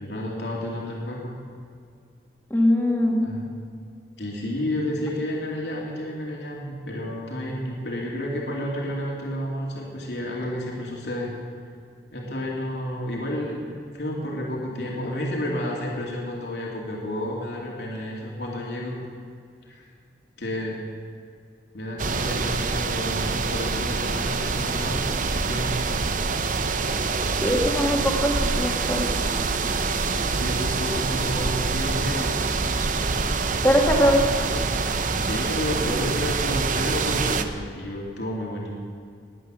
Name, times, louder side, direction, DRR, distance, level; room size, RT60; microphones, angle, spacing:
voice 1, 0.0-1.3 3.2-3.5 4.2-11.3 12.1-13.6 13.9-19.0 19.7-19.8 20.4-20.8 21.7-25.8 30.3-32.5 35.2-38.7, left 1 dB, 75° left, -3 dB, 2.7 m, -31 dB
voice 2, 2.5-3.3 27.4-29.0 33.6-34.2, equal, 10° left, -1 dB, 2.0 m, -21 dB
sound 1, 22.0-37.4, right 4 dB, 45° right, 0.7 m, -25 dB
20.5 x 8.6 x 6.3 m, 2.3 s
head